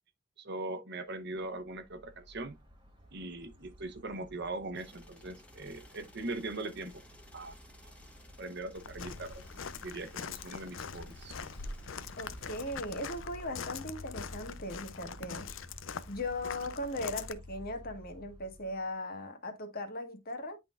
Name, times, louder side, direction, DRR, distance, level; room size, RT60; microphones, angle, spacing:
voice 1, 0.4-2.6 3.1-7.0 7.3-7.5 8.4-9.4 9.8-11.4, right 2 dB, 60° right, 1.0 m, -40 dB
sound 1, 1.3-18.9, equal, 25° right, 1.6 m, -53 dB
sound 2, 4.7-13.2, left 1 dB, 5° left, 1.5 m, -58 dB
Walk footsteps, 8.7-17.3, left 6 dB, 90° left, 0.6 m, -43 dB
voice 2, 12.2-15.5 16.1-20.6, left 1 dB, 50° left, 1.6 m, -38 dB
10.5 x 3.8 x 2.5 m
head